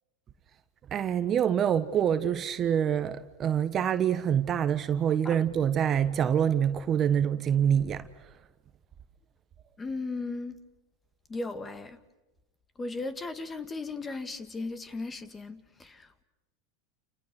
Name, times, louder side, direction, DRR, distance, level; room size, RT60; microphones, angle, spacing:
voice 1, 0.9-8.1, right 9 dB, 35° right, 1.3 m, -26 dB
voice 2, 9.8-10.6 11.3-12.0 12.8-16.2, left 3 dB, 20° left, 1.9 m, -36 dB
29.5 x 29.5 x 6.1 m
supercardioid pair, 120°, 0 cm